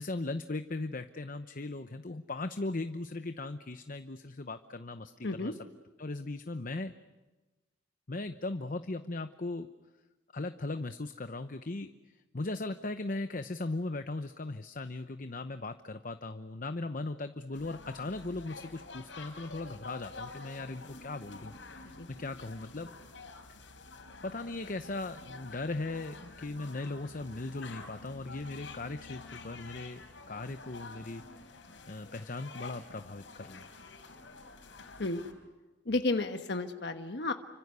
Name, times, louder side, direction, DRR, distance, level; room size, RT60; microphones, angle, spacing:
voice 1, 0.0-5.6 6.0-6.9 8.1-9.7 10.3-11.9 12.3-22.9 24.2-31.6 31.9-33.7, left 2 dB, 45° left, 9 dB, 0.9 m, -38 dB
sound 1, 17.5-35.3, left 3 dB, 85° left, 4.3 m, -49 dB
voice 2, 35.8-37.3, left 2 dB, 60° left, 6 dB, 1.3 m, -32 dB
30.0 x 25.5 x 6.9 m, 1.2 s
head